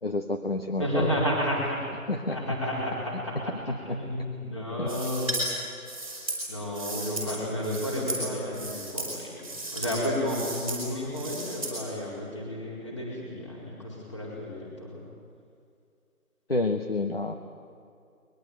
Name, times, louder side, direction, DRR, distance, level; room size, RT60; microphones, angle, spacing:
voice 1, 0.0-1.1 2.1-2.4 3.5-4.0 4.8-4.9 16.5-17.3, left 2 dB, 40° left, 5 dB, 1.1 m, -29 dB
voice 2, 0.8-1.8 2.3-5.4 6.5-15.1, equal, 20° left, -4 dB, 4.7 m, -32 dB
sound 1, 4.9-5.5 5.8-7.3 7.6-8.2 8.5-9.1 9.4-10.0 10.2-10.8 11.1-11.7, right 2 dB, ahead, 3.3 m, -34 dB
21.5 x 21.5 x 9.1 m, 2.3 s
figure-of-eight pair, 180°, 44 cm